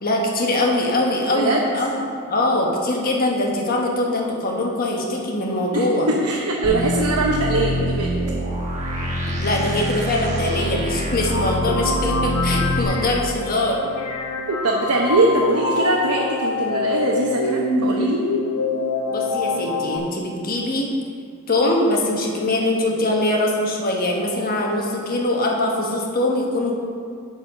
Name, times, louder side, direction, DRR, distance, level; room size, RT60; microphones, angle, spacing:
voice 1, 0.0-2.0 2.3-6.1 9.2-13.9 19.1-20.9 21.5-26.8, left 1 dB, 40° left, 0 dB, 1.2 m, -22 dB
voice 2, 5.7-8.1 14.5-18.2, right 2 dB, 85° right, -2 dB, 0.8 m, -21 dB
sound 1, 6.6-12.8, equal, 35° right, 1.2 m, -25 dB
sound 2, 11.3-20.0, left 3 dB, 80° left, 0.9 m, -25 dB
9.8 x 4.2 x 6.2 m, 2.3 s
head